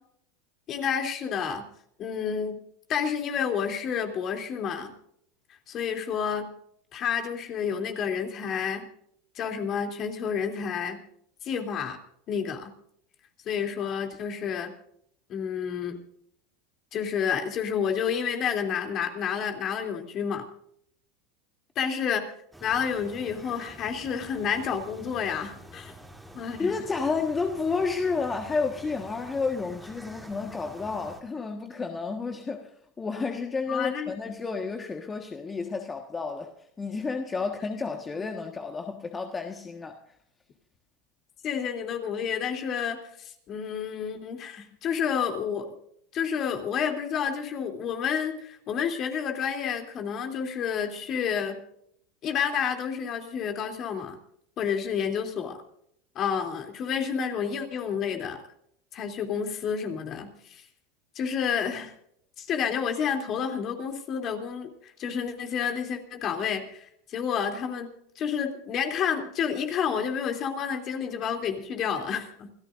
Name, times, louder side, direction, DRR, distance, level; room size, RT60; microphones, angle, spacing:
voice 1, 0.7-1.6 2.0-2.6 2.9-4.9 5.7-6.5 6.9-8.9 9.3-11.0 11.4-12.0 12.3-12.7 13.4-14.7 15.3-16.0 16.9-20.5 21.7-22.3 22.6-25.9 26.3-26.7 33.7-34.1 38.1-38.2 41.4-45.7 46.1-51.6 52.2-54.2 54.6-55.6 56.1-58.4 58.9-60.6 61.1-61.9 62.4-67.9 68.1-72.5, left 7 dB, 45° left, 3.1 m, -30 dB
sound 1, 22.5-31.2, right 1 dB, 5° right, 2.9 m, -47 dB
voice 2, 26.6-40.0 44.6-44.7, left 4 dB, 20° left, 1.5 m, -31 dB
28.5 x 14.0 x 2.6 m
supercardioid pair, 110°, 0 cm